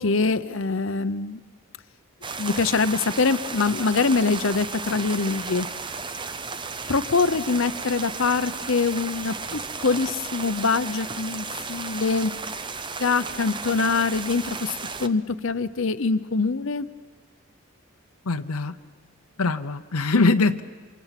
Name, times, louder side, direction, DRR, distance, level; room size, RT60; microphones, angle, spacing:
voice 1, 0.0-1.4 2.4-5.7 6.9-12.3 13.0-16.9, left 4 dB, 60° left, 12 dB, 0.7 m, -24 dB
sound 1, 2.2-15.1, right 4 dB, 20° right, 0.7 m, -34 dB
voice 2, 18.3-18.7 19.4-20.6, left 3 dB, 85° left, 7 dB, 0.9 m, -22 dB
29.5 x 25.5 x 5.9 m, 1.5 s
head